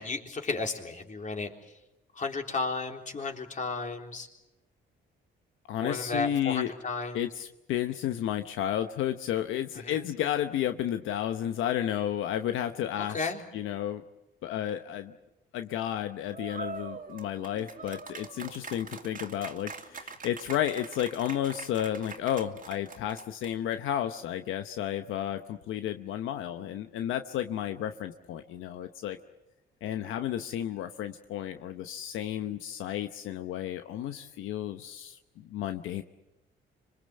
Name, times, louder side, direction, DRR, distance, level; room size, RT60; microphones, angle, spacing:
voice 1, 0.0-1.7 2.1-4.3 5.8-7.2 9.8-10.0 13.0-13.4, left 3 dB, 40° left, 3 dB, 3.7 m, -33 dB
voice 2, 5.7-6.7 7.1-13.2 13.5-14.0 14.4-15.1 15.5-29.2 29.8-36.0, left 11 dB, 90° left, 8 dB, 1.0 m, -32 dB
sound 1, 16.3-23.7, right 5 dB, 45° right, 2.6 m, -43 dB
26.0 x 23.0 x 7.8 m, 0.95 s
cardioid pair, 90°, 20 cm